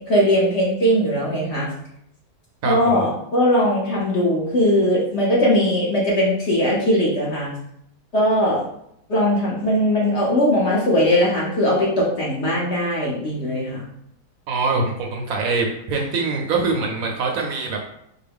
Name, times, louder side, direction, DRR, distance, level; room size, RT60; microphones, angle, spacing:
voice 1, 0.1-1.7 2.6-7.5 8.1-8.6 9.1-13.8, equal, 50° left, -4 dB, 0.9 m, -19 dB
voice 2, 2.6-3.0 14.5-17.8, right 3 dB, 70° right, 1 dB, 0.9 m, -23 dB
4.5 x 2.1 x 3.4 m, 0.75 s
omnidirectional pair, 1.7 m